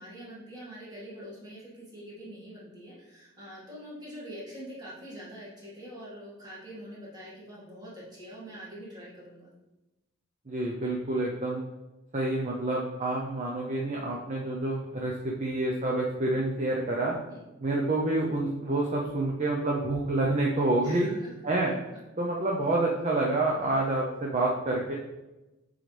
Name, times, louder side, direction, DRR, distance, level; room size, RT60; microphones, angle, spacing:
voice 1, 0.0-9.5 17.3-17.4 20.8-21.3, equal, 20° right, -7 dB, 2.0 m, -44 dB
voice 2, 10.5-11.7 12.1-17.1 17.6-21.1 21.4-21.7 22.2-24.9, right 2 dB, 35° right, -3 dB, 0.7 m, -28 dB
7.7 x 3.9 x 3.4 m, 1.0 s
head